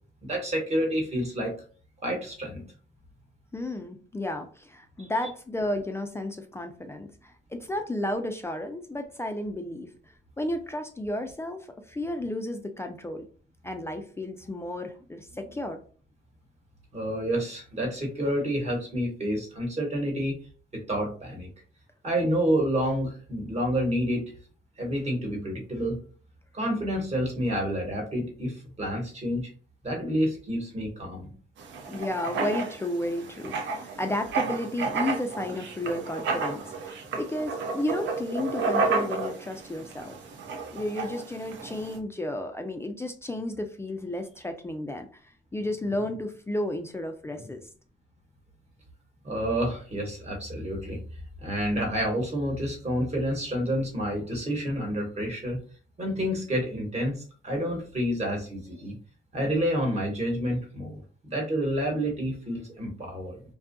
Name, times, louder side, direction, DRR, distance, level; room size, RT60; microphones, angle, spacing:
voice 1, 0.2-1.5 2.0-2.6 5.0-5.1 16.9-20.4 20.7-21.5 22.0-24.3 24.8-26.0 26.5-29.5 29.8-31.3 49.2-51.0 51.4-55.6 56.0-58.9 59.3-63.4, equal, 35° right, 0 dB, 1.1 m, -29 dB
voice 2, 3.5-9.9 10.4-13.3 13.6-15.8 31.9-40.2 40.7-47.7, left 1 dB, 15° left, 5 dB, 0.3 m, -32 dB
Writing, 31.6-42.0, right 4 dB, 70° right, 0.5 m, -32 dB
2.6 x 2.3 x 2.5 m, 0.42 s
cardioid pair, 90°, 20 cm